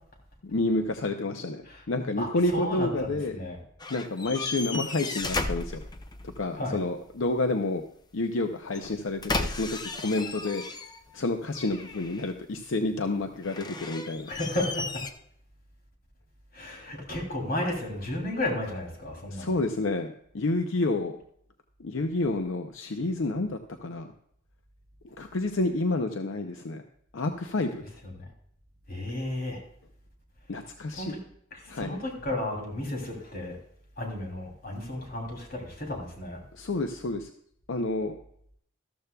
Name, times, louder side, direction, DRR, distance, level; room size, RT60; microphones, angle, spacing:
voice 1, 0.4-3.4 3.9-5.8 6.2-7.8 8.1-10.8 11.1-14.3 19.3-21.2 21.8-24.1 25.2-26.8 27.1-28.0 30.5-31.1 31.7-32.0 36.5-37.3 37.7-38.1, left 2 dB, 75° left, 6 dB, 0.6 m, -29 dB
voice 2, 2.2-3.6 6.6-6.8 14.3-15.0 16.5-19.5 28.0-28.3 28.9-29.6 30.9-31.2 31.5-33.6 34.0-36.4, left 1 dB, 50° left, 0 dB, 3.0 m, -33 dB
sound 1, 3.8-6.4 8.7-11.2 11.5-12.4 13.4-15.1, left 3 dB, 20° left, 0.6 m, -35 dB
13.5 x 13.5 x 2.3 m, 0.68 s
head